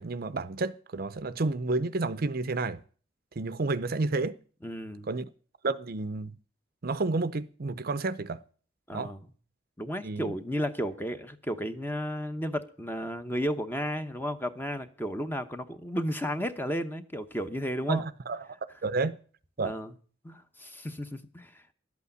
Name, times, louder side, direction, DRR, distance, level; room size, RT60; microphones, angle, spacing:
voice 1, 0.0-2.8 3.4-4.4 5.1-5.3 5.6-6.3 6.8-8.4 8.9-9.1 10.0-10.3 17.9-18.4 18.8-19.2 19.6-19.7, right 3 dB, 50° right, 0.6 m, -30 dB
voice 2, 4.6-5.1 8.9-9.2 9.8-18.0 19.6-19.9 20.2-21.7, equal, 10° left, 0.9 m, -33 dB
12.0 x 8.4 x 8.2 m
head